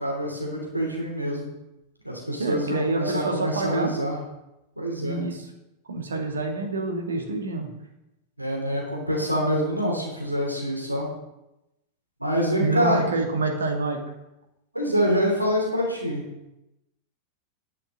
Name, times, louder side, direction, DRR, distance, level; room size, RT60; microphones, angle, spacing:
voice 1, 0.0-1.5 2.0-4.2 4.8-5.2 8.4-11.1 12.2-13.0 14.7-16.2, equal, 85° right, -1 dB, 3.1 m, -26 dB
voice 2, 2.4-3.9 5.0-5.4 5.9-7.7 12.6-14.0, right 3 dB, 70° right, 2 dB, 2.0 m, -27 dB
11.5 x 5.8 x 6.4 m, 0.92 s
figure-of-eight pair, 90°, 0 cm